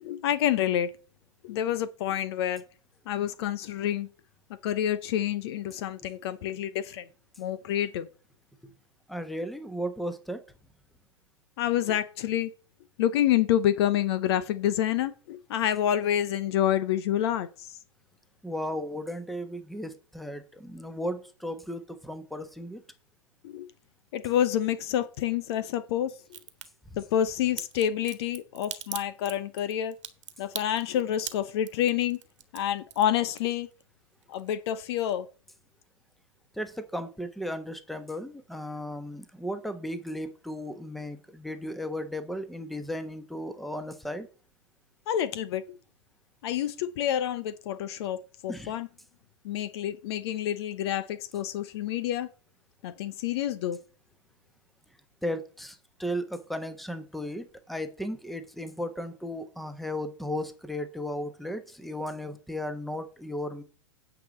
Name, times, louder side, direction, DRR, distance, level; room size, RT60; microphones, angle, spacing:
voice 1, 0.0-0.9 1.4-2.6 3.1-4.1 4.6-7.0 7.4-8.1 11.6-12.5 13.0-17.7 23.4-23.7 24.1-26.1 27.0-29.9 30.4-32.2 32.5-33.7 34.3-35.3 45.1-45.6 46.4-48.9 49.4-52.3 52.8-53.8, left 11 dB, 50° left, 0.8 m, -28 dB
voice 2, 9.1-10.4 18.4-22.8 36.5-44.3 48.5-48.7 55.2-63.6, equal, ahead, 1.1 m, -35 dB
Crack, 26.3-26.7 27.6-33.8 34.1-34.8 35.1-35.2, right 11 dB, 60° right, 1.5 m, -40 dB
9.4 x 5.0 x 7.0 m
figure-of-eight pair, 110°, 17 cm